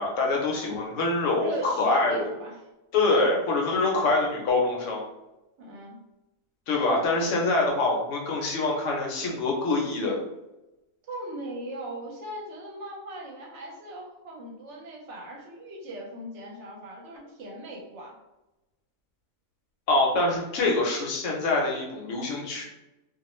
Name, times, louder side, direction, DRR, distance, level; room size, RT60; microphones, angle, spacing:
voice 1, 0.0-2.3 2.9-5.0 6.7-10.2 19.9-22.7, left 2 dB, 70° left, -1 dB, 0.9 m, -25 dB
voice 2, 1.4-2.6 5.6-6.0 11.1-18.2, right 1 dB, 65° right, -1 dB, 0.8 m, -39 dB
2.4 x 2.0 x 2.9 m, 0.98 s
omnidirectional pair, 1.4 m